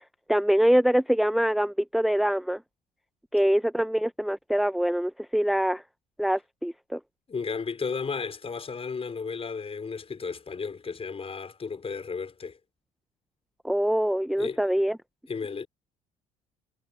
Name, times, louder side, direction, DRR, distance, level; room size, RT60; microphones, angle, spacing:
voice 1, 0.3-2.6 3.3-5.8 6.2-7.0 13.6-15.0, equal, ahead, 0.9 m, -24 dB
voice 2, 7.3-12.6 14.4-14.6 15.3-15.7, left 5 dB, 35° left, 5.2 m, -34 dB
hypercardioid pair, 65°, 18 cm